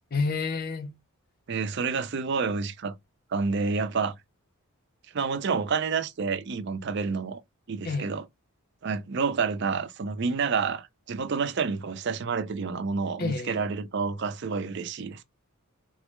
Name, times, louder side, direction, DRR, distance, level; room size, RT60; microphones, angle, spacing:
voice 1, 0.1-1.0 7.8-8.1 13.2-13.6, left 4 dB, 40° left, 0.6 m, -29 dB
voice 2, 1.5-2.9 3.3-4.1 5.1-7.4 7.7-8.2 8.8-15.2, right 5 dB, 50° right, 0.4 m, -29 dB
3.8 x 2.1 x 3.1 m
head